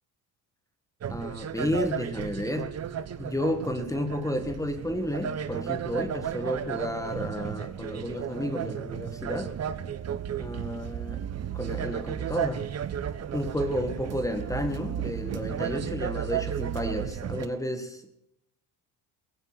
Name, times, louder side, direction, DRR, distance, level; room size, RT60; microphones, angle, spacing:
sound 1, 1.0-17.5, right 9 dB, 40° right, 1.0 m, -34 dB
voice 1, 1.1-2.7 3.2-9.6 10.4-11.3 11.5-12.7 13.3-18.1, equal, 10° left, 8 dB, 1.7 m, -32 dB
17.5 x 15.5 x 4.1 m, 0.80 s
cardioid pair, 110°, 39 cm